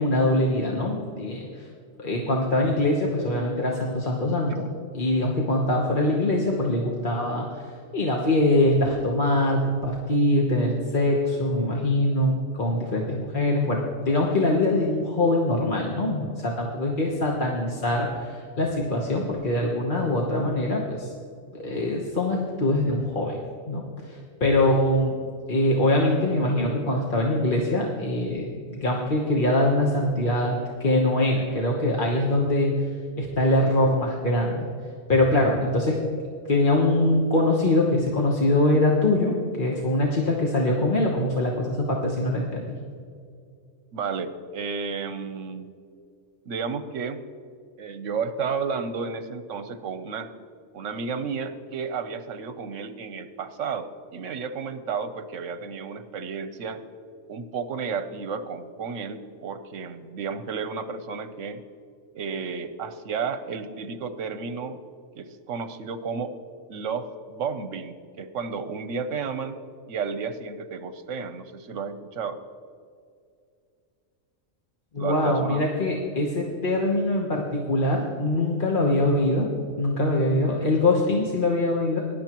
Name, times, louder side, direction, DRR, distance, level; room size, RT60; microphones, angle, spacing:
voice 1, 0.0-1.7 2.0-4.5 4.9-7.5 7.9-21.1 21.5-25.2 25.5-32.7 33.2-34.7 35.1-36.0 36.5-42.8 74.9-79.5 79.8-82.0, left 1 dB, 40° left, -1 dB, 1.2 m, -23 dB
voice 2, 43.9-45.7 46.5-47.2 47.8-50.3 50.7-56.8 57.3-61.6 62.1-64.8 65.1-66.3 66.7-72.4 75.0-75.7, right 5 dB, 75° right, 11 dB, 1.1 m, -32 dB
18.5 x 11.0 x 3.0 m, 2.3 s
omnidirectional pair, 1.3 m